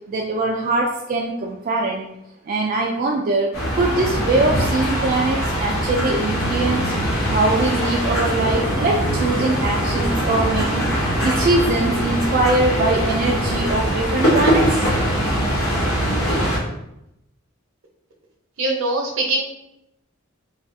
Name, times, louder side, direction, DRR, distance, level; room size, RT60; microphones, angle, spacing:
voice 1, 0.1-2.1 2.5-6.9 7.2-14.9, right 2 dB, 45° right, -1 dB, 0.4 m, -22 dB
sound 1, 3.5-16.6, equal, 90° left, 1.4 m, -22 dB
voice 2, 18.6-19.4, right 2 dB, 70° right, 1 dB, 0.8 m, -22 dB
4.8 x 2.4 x 2.6 m, 0.85 s
head